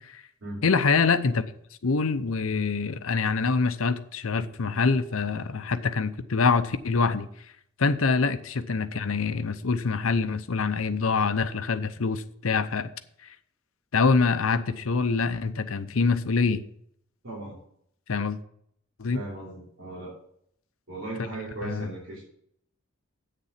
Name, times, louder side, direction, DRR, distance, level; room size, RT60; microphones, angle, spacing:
voice 1, 0.6-1.4 1.8-7.3 7.8-12.9 13.9-16.6 18.1-18.4 19.0-19.2 21.6-21.9, left 4 dB, 75° left, 0.7 m, -25 dB
voice 2, 17.2-17.6 19.1-20.2 20.9-22.2, right 2 dB, 65° right, 3.3 m, -37 dB
8.3 x 6.8 x 5.7 m
head